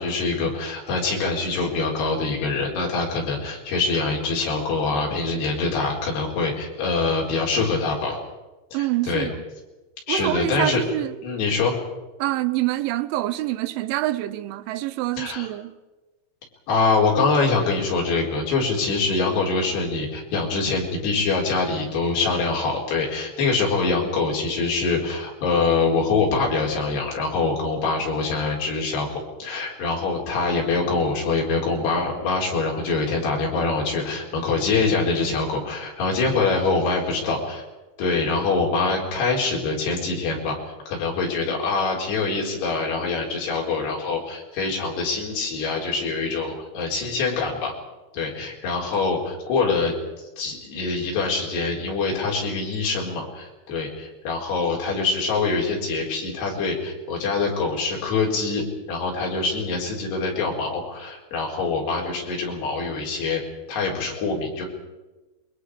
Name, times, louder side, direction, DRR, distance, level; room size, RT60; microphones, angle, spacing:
voice 1, 0.0-8.2 8.7-9.3 10.1-10.8 11.2-11.7 15.2-15.5 16.7-29.1 29.4-37.6 38.0-47.7 48.1-63.4 63.7-64.7, left 4 dB, 60° left, 6.2 m, -24 dB
voice 2, 8.7-9.3 10.1-11.1 12.2-15.8, right 15 dB, 85° right, 3.3 m, -26 dB
28.0 x 22.0 x 4.9 m
omnidirectional pair, 5.5 m